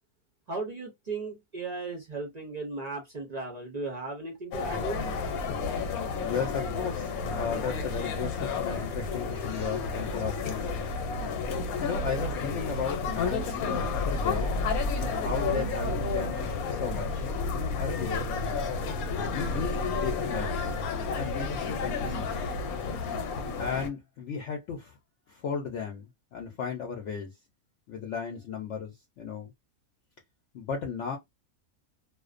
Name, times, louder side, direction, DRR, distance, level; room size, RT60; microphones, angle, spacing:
voice 1, 0.5-5.1, right 3 dB, 60° right, 0.4 m, -36 dB
sound 1, 4.5-23.9, left 4 dB, 85° left, 1.0 m, -31 dB
voice 2, 6.2-10.7 11.8-14.6 14.9-16.4 16.7-18.3 19.2-20.7 21.1-22.4 23.6-25.0 25.3-27.4 27.9-29.5 30.5-31.2, left 6 dB, 65° left, 0.8 m, -35 dB
2.4 x 2.1 x 2.4 m
omnidirectional pair, 1.5 m